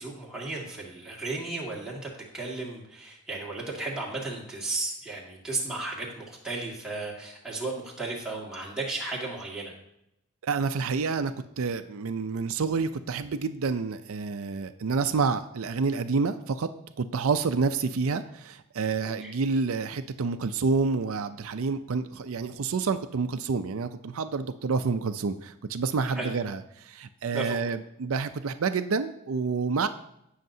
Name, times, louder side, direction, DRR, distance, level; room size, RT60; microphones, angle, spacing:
voice 1, 0.0-9.7 19.2-19.3 26.1-26.3 27.3-27.6, right 2 dB, 5° right, -5 dB, 2.0 m, -34 dB
voice 2, 10.4-16.7 17.0-29.9, right 4 dB, 75° right, 9 dB, 0.5 m, -28 dB
17.0 x 6.5 x 2.7 m, 0.79 s
head